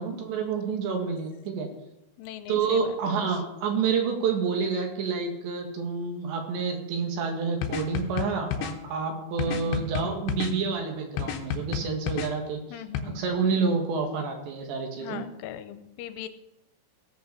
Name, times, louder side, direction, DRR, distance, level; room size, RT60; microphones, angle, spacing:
voice 1, 0.0-1.7 2.5-12.6 13.1-15.2, right 5 dB, 70° right, 3 dB, 3.9 m, -28 dB
voice 2, 2.2-3.0 3.3-3.4 9.5-9.9 12.7-13.3 15.0-16.3, left 11 dB, 90° left, 10 dB, 3.2 m, -40 dB
sound 1, 7.6-8.7 9.4-10.5 11.2-12.3 12.9-13.0, left 8 dB, 75° left, 2.9 m, -30 dB
17.5 x 8.2 x 6.7 m, 0.90 s
omnidirectional pair, 5.6 m